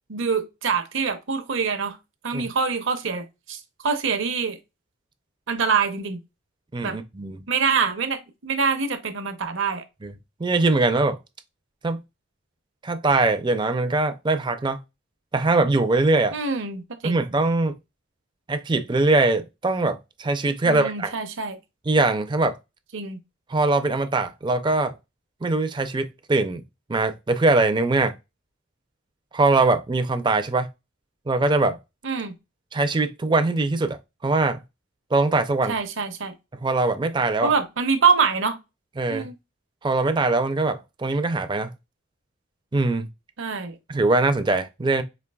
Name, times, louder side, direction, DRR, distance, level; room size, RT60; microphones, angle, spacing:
voice 1, 0.1-2.0 2.2-4.6 5.5-6.2 6.8-7.0 7.5-9.8 16.3-17.2 20.6-21.6 22.9-23.2 32.0-32.3 35.7-36.3 37.4-38.6 39.1-39.3 43.4-43.8, right 5 dB, 65° right, 0.7 m, -25 dB
voice 2, 6.7-7.4 10.0-10.1 10.4-11.2 11.8-12.0 12.8-14.8 15.3-16.4 17.0-17.7 18.5-21.1 21.9-22.5 23.5-24.9 25.4-26.6 26.9-28.1 29.3-30.7 31.3-31.8 32.7-34.0 34.2-34.6 35.1-35.8 36.6-37.5 39.0-39.3 39.8-41.7 42.7-43.1 43.9-45.0, right 2 dB, 20° right, 0.4 m, -22 dB
5.1 x 2.6 x 2.3 m
head